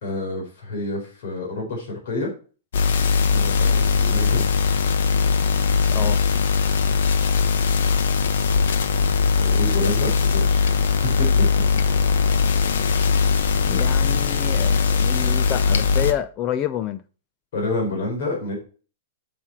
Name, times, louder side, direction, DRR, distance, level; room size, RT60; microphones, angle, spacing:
voice 1, 0.0-2.3 3.3-4.4 9.4-11.5 17.5-18.6, left 2 dB, 50° left, 3.9 m, -29 dB
sound 1, 2.7-16.1, left 5 dB, 65° left, 1.1 m, -20 dB
voice 2, 13.7-17.0, left 10 dB, 20° left, 0.4 m, -28 dB
8.6 x 6.0 x 4.4 m
supercardioid pair, 180°, 0 cm